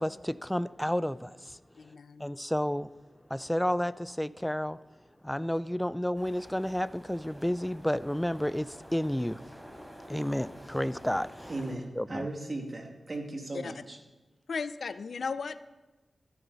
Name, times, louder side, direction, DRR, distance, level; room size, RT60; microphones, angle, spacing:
voice 1, 0.0-1.6 2.2-2.9 3.3-4.8 5.2-9.8 10.1-11.5 11.9-12.3, equal, 10° left, 0.4 m, -31 dB
voice 2, 1.8-2.3 10.1-10.3 13.5-13.7 14.5-15.6, left 5 dB, 75° left, 0.5 m, -36 dB
sound 1, 6.2-11.7, equal, 5° right, 4.1 m, -49 dB
voice 3, 11.5-14.0, right 2 dB, 50° right, 2.3 m, -37 dB
13.5 x 11.5 x 4.1 m
cardioid pair, 40°, 0 cm